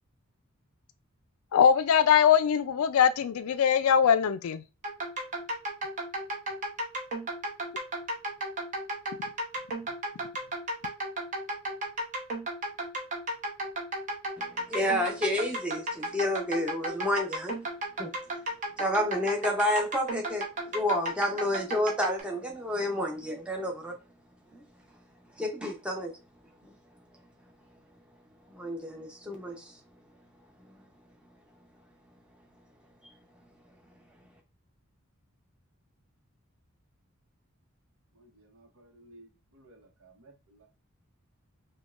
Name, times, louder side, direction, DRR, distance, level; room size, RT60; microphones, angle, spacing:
voice 1, 1.5-4.6, left 8 dB, 80° left, 0.4 m, -22 dB
sound 1, 4.8-22.2, right 1 dB, 35° right, 0.8 m, -34 dB
voice 2, 14.4-17.6 18.0-18.1 18.8-20.4 20.7-23.9 24.5-24.6 25.4-26.1 28.5-29.7, left 1 dB, 5° right, 0.7 m, -30 dB
voice 3, 38.1-40.7, right 2 dB, 75° right, 0.9 m, -57 dB
5.1 x 2.2 x 2.4 m
head